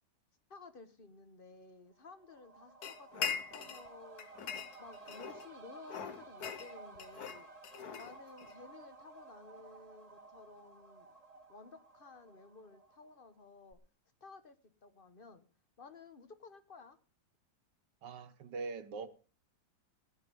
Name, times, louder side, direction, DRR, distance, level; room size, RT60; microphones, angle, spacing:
voice 1, 0.5-4.3 4.8-7.5 8.0-11.1 11.5-13.8 14.2-14.6 14.8-15.5 15.8-17.0, left 4 dB, 35° left, 1.0 m, -54 dB
sound 1, 1.9-13.4 13.7-13.8, right 3 dB, 25° right, 1.1 m, -55 dB
sound 2, 2.8-3.9 4.2-5.5 5.9-8.6, left 7 dB, 60° left, 1.3 m, -41 dB
voice 2, 18.0-19.1, right 4 dB, 65° right, 1.6 m, -42 dB
16.5 x 10.5 x 5.4 m
omnidirectional pair, 2.1 m